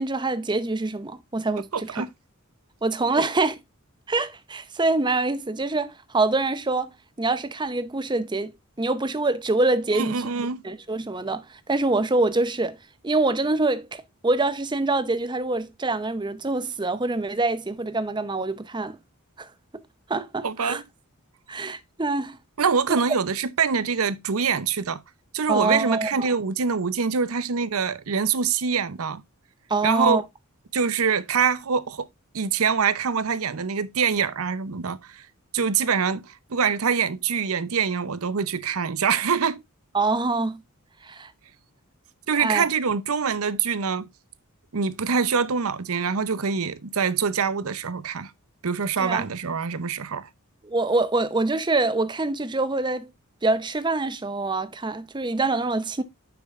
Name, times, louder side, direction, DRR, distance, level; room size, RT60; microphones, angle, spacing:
voice 1, 0.0-2.1 2.8-3.5 4.1-8.5 8.8-10.2 10.6-12.8 13.0-19.0 19.4-19.5 20.1-20.8 21.5-22.4 25.5-26.3 29.7-30.2 39.9-40.6 41.0-41.3 42.4-42.6 49.0-49.2 50.6-53.1 53.4-56.0, right 2 dB, 20° right, 0.7 m, -25 dB
voice 2, 1.7-2.1 3.1-3.2 9.9-10.6 20.4-20.8 22.6-25.0 25.3-29.2 29.8-30.2 30.7-32.1 32.3-35.2 35.5-39.6 42.3-44.1 44.7-48.3 48.6-50.3, right 6 dB, 70° right, 0.7 m, -24 dB
9.5 x 6.8 x 2.4 m
head